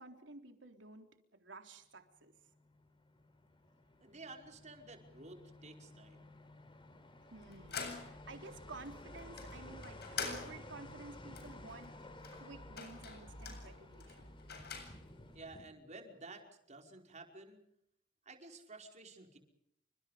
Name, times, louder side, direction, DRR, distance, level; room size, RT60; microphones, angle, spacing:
voice 1, 0.0-2.3 7.3-12.0 12.3-14.3, right 3 dB, 75° right, 5 dB, 3.8 m, -53 dB
sound 1, 2.2-15.6, left 1 dB, 30° left, 4.2 m, -55 dB
voice 2, 4.0-6.3 15.3-17.6 18.3-19.4, right 2 dB, 40° right, 3 dB, 5.3 m, -53 dB
sound 2, 7.3-15.3, left 5 dB, 60° left, 7.8 m, -47 dB
30.0 x 26.5 x 5.2 m, 0.74 s
head